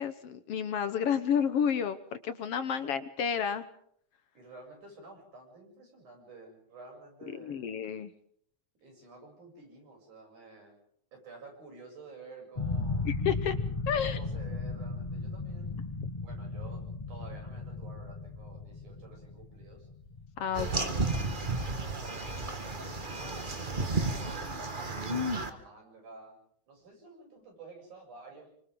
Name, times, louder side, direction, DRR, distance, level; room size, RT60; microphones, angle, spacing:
voice 1, 0.0-3.6 7.4-8.1 13.1-13.6 13.9-14.2 20.4-20.9, left 8 dB, 60° left, 11 dB, 1.8 m, -31 dB
voice 2, 4.3-7.7 8.8-10.8 11.1-13.1 14.0-15.9 16.2-19.9 20.5-26.4 26.7-28.5, right 3 dB, 90° right, 0 dB, 9.3 m, -51 dB
sound 1, 12.6-21.4, left 3 dB, 25° left, 0.7 m, -36 dB
sound 2, 20.5-25.5, right 2 dB, 25° right, 1.2 m, -32 dB
29.5 x 24.5 x 3.9 m, 0.65 s
omnidirectional pair, 3.4 m